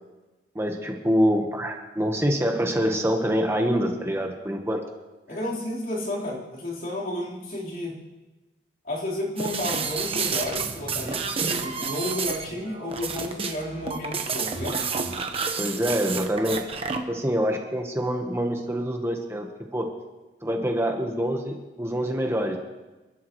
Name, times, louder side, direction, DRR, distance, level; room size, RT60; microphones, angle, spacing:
voice 1, 0.5-4.8 15.6-16.7 17.1-19.9 20.4-22.6, equal, 15° right, 2 dB, 1.1 m, -25 dB
voice 2, 5.3-8.0 8.8-14.8, left 1 dB, 55° left, -5 dB, 4.0 m, -32 dB
sound 1, 9.4-17.0, right 5 dB, 35° right, 1.1 m, -30 dB
28.5 x 12.0 x 3.1 m, 1.2 s
head